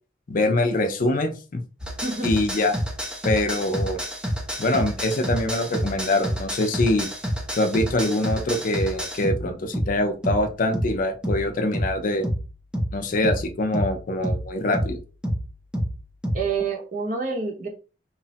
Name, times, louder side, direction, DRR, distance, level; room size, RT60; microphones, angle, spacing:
voice 1, 0.3-1.6 2.2-2.8 3.2-4.0 4.6-7.1 7.6-12.3 12.9-15.0, left 2 dB, 50° left, 6 dB, 0.5 m, -24 dB
sound 1, 1.8-16.5, equal, 5° right, 0.5 m, -29 dB
voice 2, 16.3-17.7, right 4 dB, 45° right, 1 dB, 0.7 m, -27 dB
3.0 x 2.0 x 2.8 m, 0.34 s
head